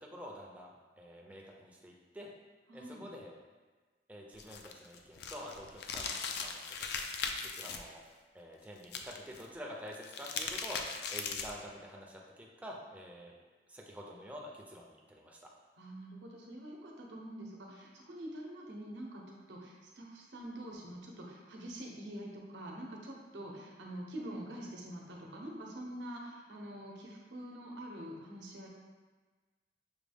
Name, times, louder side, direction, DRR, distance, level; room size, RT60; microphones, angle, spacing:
voice 1, 0.0-2.3 2.7-3.3 4.1-7.1 7.4-8.0 8.3-10.8 11.1-13.4 13.7-15.5, equal, 10° right, -2 dB, 0.5 m, -48 dB
voice 2, 2.7-3.1 15.8-28.7, right 1 dB, 70° right, -1 dB, 0.8 m, -45 dB
sound 1, 4.4-7.8 8.8-9.4 9.9-11.6, left 5 dB, 60° left, 0.4 m, -39 dB
6.0 x 2.3 x 3.4 m, 1.3 s
head